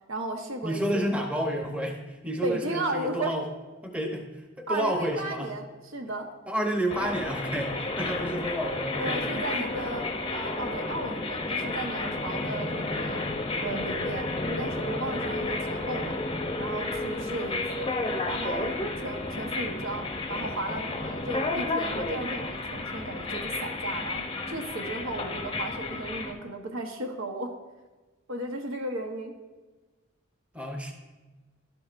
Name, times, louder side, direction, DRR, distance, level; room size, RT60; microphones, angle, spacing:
voice 1, 0.1-1.1 2.4-3.3 4.7-6.3 9.0-10.1 10.3-13.2 13.6-16.2 16.6-17.9 18.3-27.5 28.3-29.3, right 1 dB, 80° right, 3 dB, 1.1 m, -35 dB
voice 2, 0.6-2.0 2.2-3.4 3.8-4.2 4.6-5.5 6.5-9.2 9.5-9.9 30.5-30.9, right 1 dB, 5° right, 2 dB, 0.8 m, -30 dB
sound 1, 6.9-26.3, left 2 dB, 25° left, 0.6 m, -32 dB
11.5 x 7.7 x 2.6 m, 1.2 s
head